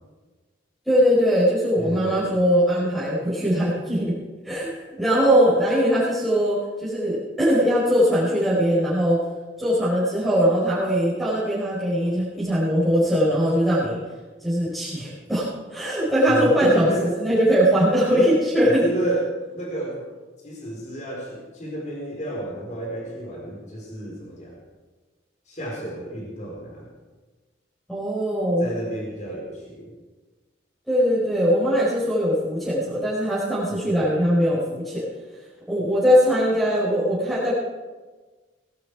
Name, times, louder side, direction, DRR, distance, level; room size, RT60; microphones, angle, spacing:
voice 1, 0.8-4.2 4.4-9.2 9.6-14.0 14.4-16.9 17.2-18.8 27.9-28.7 30.9-35.0 35.7-37.5, equal, ahead, -12 dB, 4.8 m, -21 dB
voice 2, 1.8-2.3 16.3-17.1 18.1-18.3 18.6-20.1 20.4-24.6 25.5-26.9 28.6-29.9 33.7-34.3, right 1 dB, 40° left, -3 dB, 4.3 m, -31 dB
19.5 x 12.0 x 4.8 m, 1.3 s
head